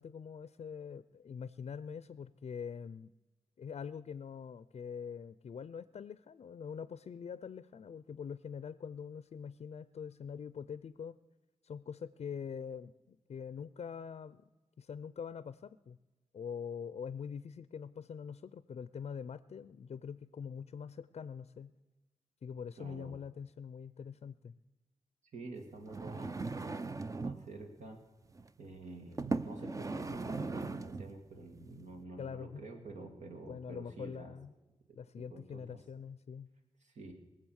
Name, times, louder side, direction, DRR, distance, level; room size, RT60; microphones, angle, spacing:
voice 1, 0.0-3.1 3.6-11.2 11.6-14.5 14.8-16.0 16.3-21.7 22.4-24.6 32.2-32.6 33.4-34.5 35.0-36.5, left 7 dB, 60° left, 15 dB, 0.5 m, -44 dB
voice 2, 22.8-23.2 25.3-28.0 28.6-34.4 34.9-35.8 36.8-37.1, right 2 dB, 80° right, 4 dB, 2.1 m, -49 dB
sound 1, 25.8-27.5 28.3-28.5 29.2-31.2 31.8-31.9, right 3 dB, 25° right, 0.5 m, -38 dB
22.5 x 7.7 x 6.4 m, 1.1 s
wide cardioid pair, 115°, 12 cm